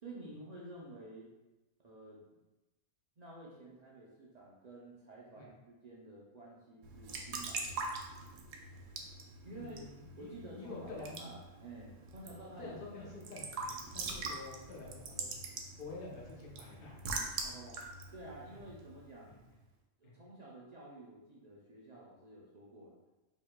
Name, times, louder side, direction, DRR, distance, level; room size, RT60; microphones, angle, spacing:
voice 1, 0.0-1.3 1.8-2.2 3.2-8.0 9.4-12.8 15.1-15.2 17.3-17.8 18.1-19.4 20.0-23.0, right 2 dB, 50° right, -5 dB, 0.5 m, -51 dB
Raindrop / Drip / Trickle dribble, 6.8-19.3, right 3 dB, 80° right, 0.9 m, -44 dB
voice 2, 9.5-10.3 10.6-11.3 12.6-17.0 18.5-18.6 19.3-19.4 20.0-20.2, left 3 dB, 50° left, -3 dB, 0.8 m, -48 dB
4.5 x 2.9 x 2.2 m, 1.1 s
omnidirectional pair, 1.3 m